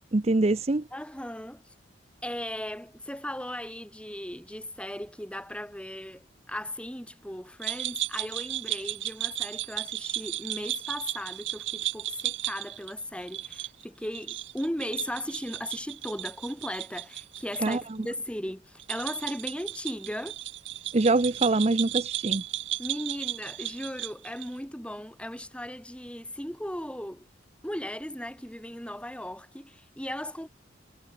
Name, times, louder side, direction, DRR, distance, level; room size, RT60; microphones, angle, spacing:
voice 1, 0.0-0.8 17.6-17.8 20.9-22.4, right 2 dB, 35° right, 0.7 m, -24 dB
voice 2, 0.9-1.7 2.2-20.4 21.5-21.6 22.8-27.3 27.6-30.5, left 1 dB, 5° left, 7.6 m, -37 dB
sound 1, 7.6-17.8 18.0-18.1 18.8-24.6, right 14 dB, 75° right, 1.8 m, -34 dB
head